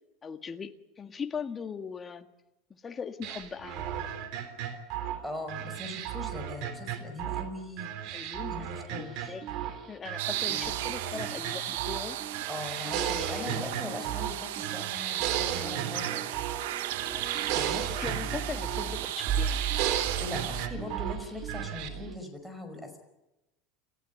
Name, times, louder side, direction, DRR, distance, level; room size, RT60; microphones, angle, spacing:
voice 1, 0.2-2.3 2.7-3.9 8.1-9.4 9.9-12.2 13.0-13.9 17.9-19.6, left 6 dB, 20° left, 7 dB, 1.7 m, -40 dB
sound 1, 3.2-7.5 7.8-9.8 10.1-12.1 12.3-14.4 14.6-16.7 16.9-18.9 19.2-21.2 21.5-21.9, right 10 dB, 60° right, 3.3 m, -35 dB
voice 2, 5.2-7.9 8.5-9.4 10.5-10.7 12.5-16.5 17.5-17.9 20.2-23.0, left 1 dB, ahead, 7 dB, 5.1 m, -41 dB
sound 2, 8.9-22.2, right 7 dB, 35° right, 2.0 m, -39 dB
sound 3, 10.2-20.7, right 14 dB, 85° right, 1.4 m, -35 dB
28.5 x 15.0 x 9.6 m, 0.97 s
supercardioid pair, 135°, 0 cm